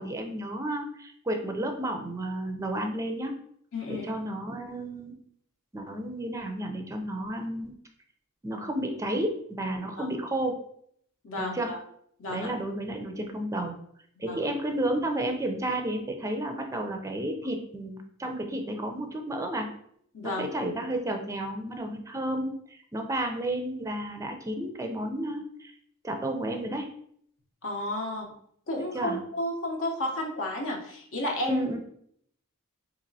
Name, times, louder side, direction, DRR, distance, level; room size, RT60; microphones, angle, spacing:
voice 1, 0.0-3.3 3.9-5.2 5.7-7.8 8.4-10.6 11.5-11.7 12.3-13.7 14.2-19.7 20.2-25.7 26.0-26.9 28.9-29.2 31.5-31.8, right 1 dB, 15° right, 4 dB, 0.4 m, -32 dB
voice 2, 3.7-4.1 10.0-10.1 11.2-11.8 12.2-12.5 14.3-14.4 20.1-20.5 27.6-28.3 28.7-31.7, left 1 dB, 65° left, 0 dB, 0.8 m, -32 dB
4.1 x 2.9 x 2.7 m, 0.67 s
head